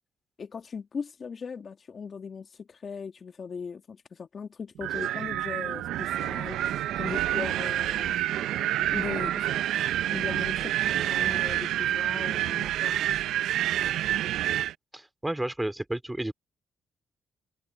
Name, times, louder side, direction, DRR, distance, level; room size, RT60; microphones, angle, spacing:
voice 1, 0.4-6.7 7.0-8.2 8.9-9.6 10.1-13.0, left 6 dB, 45° left, 1.8 m, -39 dB
Wind, 4.8-14.7, right 13 dB, 85° right, 0.6 m, -28 dB
voice 2, 14.9-16.3, right 1 dB, 10° right, 2.8 m, -31 dB
cardioid pair, 90°, 0 cm